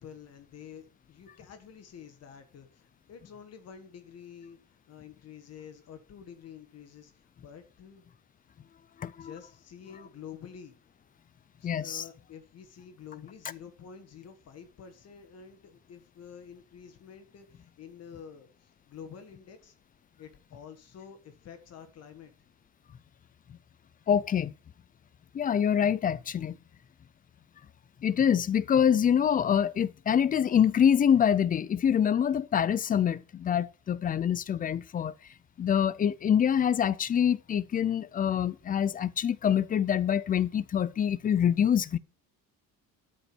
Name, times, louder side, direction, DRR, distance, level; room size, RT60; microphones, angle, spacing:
voice 1, 0.0-8.0 9.2-10.8 11.6-19.7 20.2-22.3, left 7 dB, 45° left, 1.6 m, -49 dB
voice 2, 9.0-9.3 11.6-12.0 24.1-24.5 25.3-26.6 28.0-35.1 35.6-42.0, left 8 dB, 25° left, 0.4 m, -25 dB
12.5 x 5.2 x 6.1 m
cardioid pair, 170°, 35 cm